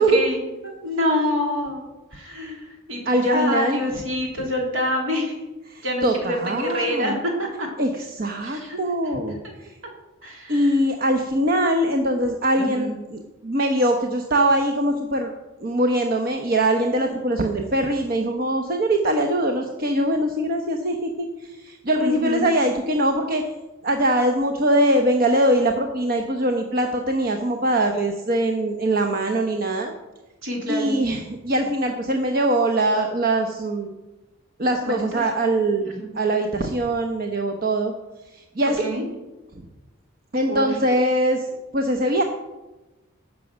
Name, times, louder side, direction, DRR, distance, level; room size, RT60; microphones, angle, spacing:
voice 1, 0.0-1.8 2.1-5.3 5.8-7.7 8.4-8.8 10.2-10.8 12.6-12.9 22.0-22.4 30.4-30.9 34.8-35.2 35.9-36.0 38.6-39.0 40.5-40.7, equal, 70° right, 0 dB, 3.4 m, -26 dB
voice 2, 3.1-3.8 4.4-4.5 5.7-7.2 7.8-9.7 10.5-15.3 15.6-23.4 23.8-29.9 30.7-33.9 34.6-35.9 36.1-37.9 38.3-38.9 40.3-41.5 41.7-42.2, right 1 dB, 45° right, 4 dB, 0.9 m, -22 dB
16.5 x 6.3 x 6.2 m, 1.1 s
head